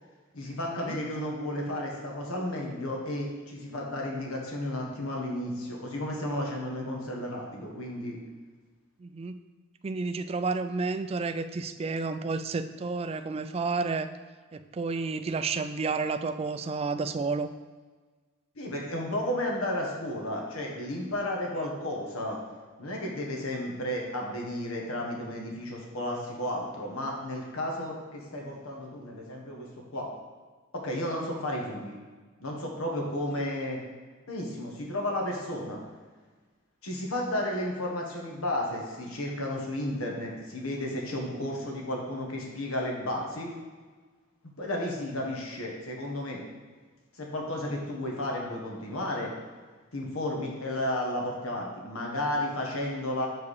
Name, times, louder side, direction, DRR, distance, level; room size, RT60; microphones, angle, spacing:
voice 1, 0.3-8.2 18.6-22.4 22.8-30.1 30.7-32.0 32.4-33.8 34.3-35.8 36.8-43.5 44.6-46.4 47.1-49.3 49.9-53.3, left 1 dB, 90° left, -1 dB, 1.5 m, -33 dB
voice 2, 9.0-9.4 9.8-14.1 14.5-17.5 21.6-21.7, right 4 dB, 30° right, 11 dB, 0.3 m, -31 dB
7.1 x 4.7 x 4.8 m, 1.4 s
head